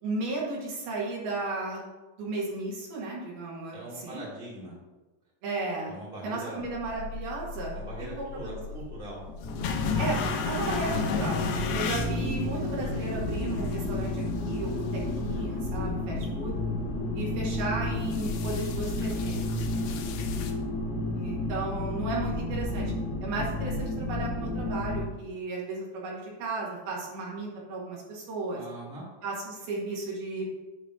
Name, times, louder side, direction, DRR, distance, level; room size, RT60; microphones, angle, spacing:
voice 1, 0.0-1.9 2.2-4.2 5.4-7.8 8.1-8.7 10.0-11.4 11.7-16.6 17.1-19.7 21.2-22.9 23.2-28.6 29.2-30.5, right 3 dB, 75° right, -4 dB, 3.7 m, -34 dB
voice 2, 3.7-4.7 5.8-6.6 7.7-9.2 11.3-11.7 19.7-20.0 20.3-20.6 28.5-29.0, right 1 dB, ahead, -7 dB, 1.1 m, -42 dB
sound 1, 6.6-20.5, left 6 dB, 90° left, 2.8 m, -37 dB
sound 2, 9.4-25.1, left 2 dB, 70° left, 1.6 m, -31 dB
9.1 x 3.3 x 6.2 m, 1.1 s
omnidirectional pair, 4.5 m